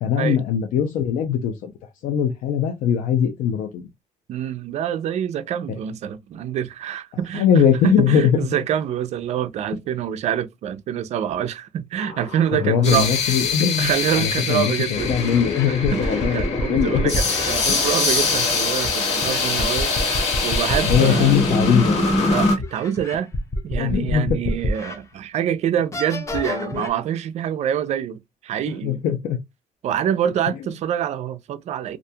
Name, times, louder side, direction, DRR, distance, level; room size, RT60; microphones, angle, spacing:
voice 1, 0.0-1.7 2.0-3.8 7.3-8.3 12.5-17.2 17.7-17.8 20.8-22.0 23.8-24.6 26.7-26.8 28.8-29.4, left 8 dB, 90° left, 0.5 m, -21 dB
voice 2, 4.3-13.4 13.8-15.2 15.7-21.4 22.3-23.3 23.6-29.0 29.8-32.0, right 9 dB, 60° right, 0.4 m, -26 dB
sound 1, 12.0-22.5, left 3 dB, 55° left, 1.2 m, -23 dB
sound 2, 14.4-14.5 15.1-17.5 18.8-21.2 21.7-21.8 22.6-25.0 25.4-25.5 25.9-26.9, left 1 dB, 25° left, 0.5 m, -27 dB
2.4 x 2.2 x 2.7 m
cardioid pair, 130°, 13 cm